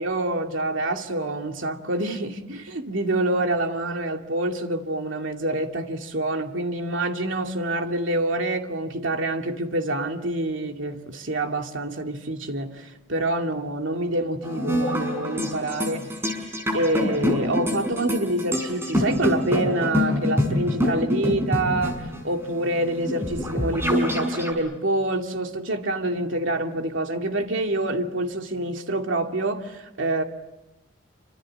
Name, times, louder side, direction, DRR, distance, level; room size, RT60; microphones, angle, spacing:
voice 1, 0.0-16.1 16.7-22.0 22.2-30.2, right 2 dB, 75° right, 2.5 m, -26 dB
sound 1, 14.4-24.5, left 1 dB, 15° right, 5.6 m, -26 dB
28.5 x 25.5 x 7.8 m
head